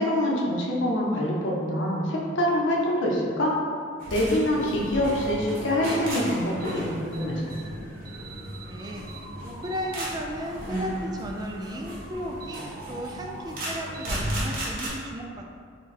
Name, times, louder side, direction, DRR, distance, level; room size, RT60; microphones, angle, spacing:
voice 1, 0.0-3.5 4.1-7.5, left 1 dB, 75° left, -3 dB, 0.7 m, -25 dB
sound 1, 4.0-14.9, equal, 50° right, 1.0 m, -34 dB
voice 2, 8.7-9.1 9.4-15.5, equal, 20° right, 1 dB, 0.3 m, -35 dB
4.1 x 2.3 x 4.2 m, 2.2 s
head